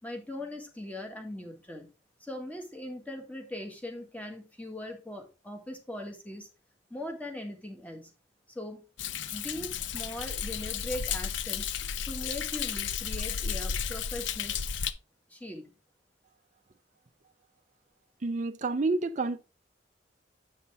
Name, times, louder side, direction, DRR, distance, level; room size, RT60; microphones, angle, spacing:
voice 1, 0.0-1.9 2.2-6.5 6.9-8.2 8.5-8.8 9.3-11.7 12.1-14.7 15.3-15.7, left 1 dB, 10° left, 1.8 m, -40 dB
Thunder, 9.0-14.9, left 7 dB, 75° left, 0.6 m, -33 dB
voice 2, 18.2-19.4, right 3 dB, 40° right, 0.6 m, -29 dB
8.4 x 5.7 x 3.6 m
head